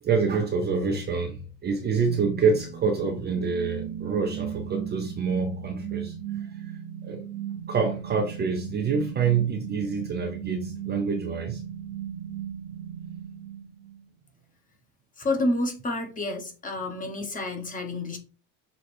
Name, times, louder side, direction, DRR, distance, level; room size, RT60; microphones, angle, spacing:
voice 1, 0.0-6.7 7.0-7.2 7.7-11.6, right 5 dB, 25° right, 0.7 m, -27 dB
sound 1, 2.1-14.0, right 10 dB, 50° right, 0.9 m, -37 dB
voice 2, 15.2-18.2, left 2 dB, 20° left, 1.2 m, -29 dB
6.6 x 3.9 x 4.3 m
cardioid pair, 175°, 43 cm